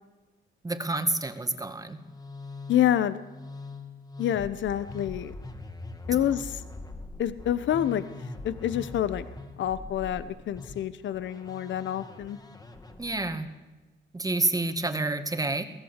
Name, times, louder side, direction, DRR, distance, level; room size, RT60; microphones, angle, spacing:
voice 1, 0.6-2.0 6.1-6.4 13.0-13.5 14.1-15.6, right 2 dB, 20° right, 9 dB, 1.9 m, -29 dB
Musical instrument, 1.7-13.5, left 2 dB, 20° left, 2.6 m, -43 dB
voice 2, 2.7-3.2 4.2-5.3 6.1-6.6 7.2-8.0 8.4-9.3 9.6-12.4, left 11 dB, 70° left, 14 dB, 1.0 m, -27 dB
23.5 x 17.0 x 8.2 m, 1.2 s
cardioid pair, 90°, 20 cm